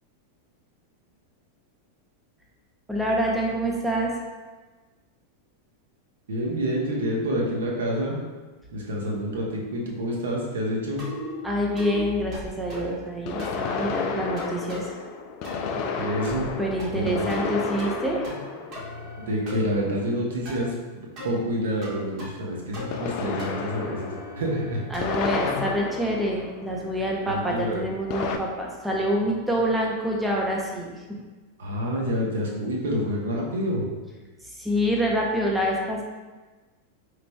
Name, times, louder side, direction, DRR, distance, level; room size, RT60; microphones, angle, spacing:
voice 1, 2.9-4.1 11.4-14.8 16.6-18.2 24.9-30.9 34.6-36.0, equal, 5° right, -2 dB, 0.6 m, -26 dB
voice 2, 6.3-8.2 8.7-11.0 15.9-16.5 16.9-17.3 19.2-20.7 21.2-24.1 24.4-24.8 25.4-25.6 27.3-27.8 31.6-33.8, equal, 60° right, -2 dB, 0.8 m, -28 dB
sound 1, 9.3-9.4 13.3-19.8 22.9-27.1 28.1-28.4, left 5 dB, 40° left, 0.3 m, -32 dB
sound 2, 11.0-11.4 11.8-12.0 12.3-13.0 13.4-13.7 14.4-14.9 15.4-15.8 16.2-16.5 16.8-17.5 17.8-18.4 18.7-19.6 20.5-20.7 21.2-21.4 21.8-22.5 22.7-23.1 23.4-25.2, equal, 40° right, 1.1 m, -38 dB
4.9 x 3.2 x 2.2 m, 1.3 s
figure-of-eight pair, 90°, 0 cm